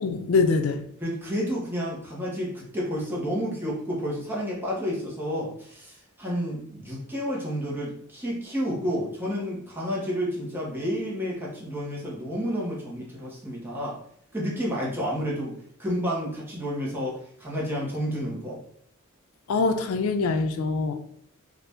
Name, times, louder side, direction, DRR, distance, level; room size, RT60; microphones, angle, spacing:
voice 1, 0.0-0.9 19.5-20.9, left 4 dB, 85° left, 7 dB, 0.4 m, -24 dB
voice 2, 1.0-14.0 14.3-15.5 15.8-18.6, equal, 10° right, -5 dB, 0.9 m, -30 dB
2.7 x 2.5 x 3.4 m, 0.64 s
head